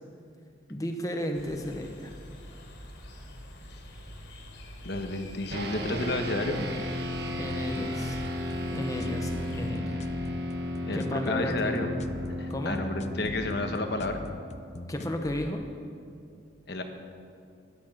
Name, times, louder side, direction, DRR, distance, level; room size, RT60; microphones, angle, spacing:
voice 1, 0.7-2.1 7.4-8.2 8.7-10.0 10.9-11.9 12.5-12.8 14.9-15.6, left 1 dB, 15° left, 3 dB, 1.0 m, -33 dB
sound 1, 1.3-9.7, left 1 dB, 80° left, 3.5 m, -46 dB
voice 2, 4.8-6.7 10.9-11.9 12.4-14.2 16.7-16.8, left 2 dB, 55° left, 5 dB, 1.3 m, -31 dB
sound 2, 5.5-15.1, equal, 55° right, 1.2 m, -35 dB
sound 3, 7.5-15.5, left 2 dB, 35° left, 0.5 m, -42 dB
12.0 x 11.5 x 7.6 m, 2.3 s
head